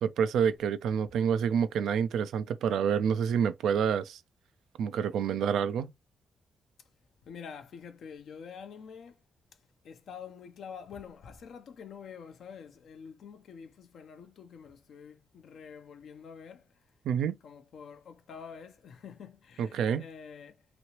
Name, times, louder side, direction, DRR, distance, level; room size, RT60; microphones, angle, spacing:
voice 1, 0.0-4.2 4.8-5.9 17.0-17.4 19.6-20.1, right 7 dB, 75° right, 0.4 m, -28 dB
voice 2, 7.3-9.2 9.8-16.7 17.4-20.7, left 6 dB, 70° left, 0.6 m, -47 dB
3.0 x 2.9 x 2.9 m
supercardioid pair, 55°, 0 cm